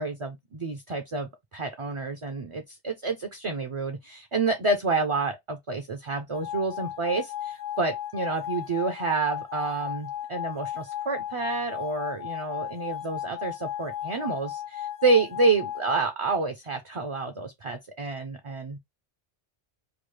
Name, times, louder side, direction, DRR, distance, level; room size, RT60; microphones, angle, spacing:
voice 1, 0.0-18.8, right 3 dB, 40° right, 0.5 m, -29 dB
sound 1, 6.3-16.0, left 11 dB, 50° left, 0.5 m, -35 dB
3.9 x 2.4 x 3.2 m
omnidirectional pair, 1.1 m